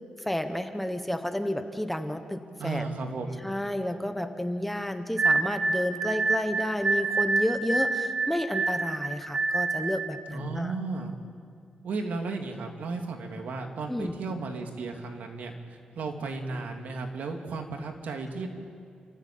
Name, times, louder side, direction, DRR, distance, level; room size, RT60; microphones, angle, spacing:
voice 1, 0.2-2.9 3.4-10.7 13.9-14.1, left 1 dB, 5° left, 7 dB, 1.2 m, -31 dB
voice 2, 2.6-3.5 10.3-11.1 11.8-18.5, right 3 dB, 85° right, 3 dB, 2.5 m, -34 dB
sound 1, 5.2-10.1, right 3 dB, 45° right, 2.3 m, -27 dB
30.0 x 14.0 x 8.7 m, 2.4 s
wide cardioid pair, 135°, 3 cm